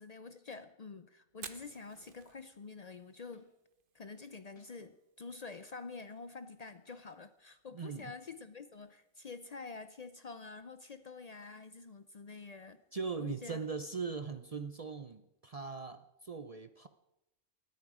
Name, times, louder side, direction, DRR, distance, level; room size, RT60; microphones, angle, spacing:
voice 1, 0.0-3.5 3.9-12.8 13.2-13.6, left 4 dB, 80° left, 11 dB, 0.3 m, -48 dB
Fire, 1.3-15.2, right 7 dB, 45° right, 0.9 m, -60 dB
sound 1, 1.9-2.3 3.3-3.7 4.6-5.1 6.9-7.4 8.7-8.8, left 1 dB, 65° left, 3.7 m, -70 dB
voice 2, 7.7-8.1 12.9-16.9, right 5 dB, 65° right, 10 dB, 0.3 m, -40 dB
19.5 x 13.5 x 4.9 m, 0.90 s
omnidirectional pair, 1.6 m